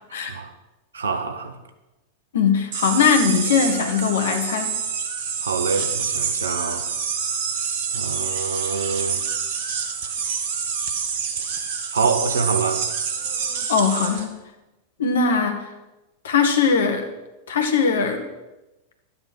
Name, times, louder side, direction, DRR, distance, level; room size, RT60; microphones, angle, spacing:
voice 1, 0.9-1.6 5.4-6.9 7.9-9.2 11.9-12.8, right 5 dB, 70° right, 1.4 m, -25 dB
voice 2, 2.3-4.8 13.7-14.4 15.0-15.7 16.2-17.1 17.5-18.3, left 6 dB, 60° left, 1.9 m, -20 dB
sound 1, 2.7-14.2, right 6 dB, 55° right, 1.7 m, -27 dB
13.0 x 9.6 x 6.3 m
figure-of-eight pair, 90°, 0 cm